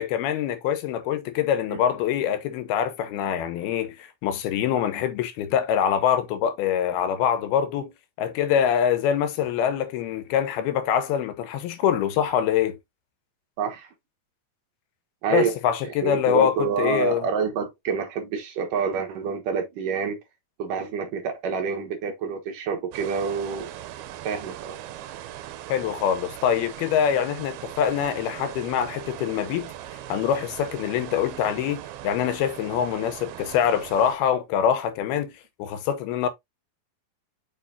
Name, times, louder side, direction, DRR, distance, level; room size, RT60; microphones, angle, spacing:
voice 1, 0.0-7.9 8.2-12.8 15.3-17.2 25.7-29.7 30.1-35.3 35.6-36.3, left 9 dB, 80° left, 2.9 m, -24 dB
voice 2, 13.6-13.9 15.2-15.5 16.0-20.2 20.6-23.7 24.2-24.8, right 6 dB, 65° right, 2.6 m, -27 dB
sound 1, 22.9-34.2, right 12 dB, 85° right, 2.6 m, -39 dB
7.2 x 5.4 x 2.7 m
omnidirectional pair, 4.4 m